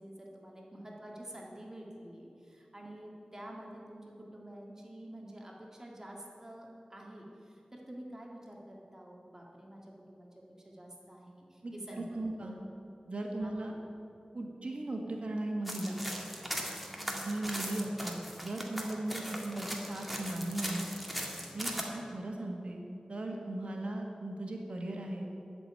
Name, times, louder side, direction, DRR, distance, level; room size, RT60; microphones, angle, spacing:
voice 1, 0.0-10.3 10.6-12.6 13.4-13.5 16.9-17.3, right 1 dB, 25° right, -2 dB, 1.9 m, -49 dB
voice 2, 11.6-12.6 13.1-13.7 14.3-16.0 17.2-20.9 21.5-22.8 23.1-25.2, right 1 dB, 65° right, 1 dB, 1.6 m, -37 dB
sound 1, 15.7-21.8, equal, ahead, 2.0 m, -39 dB
12.0 x 7.0 x 8.9 m, 2.7 s
wide cardioid pair, 70°, 2 cm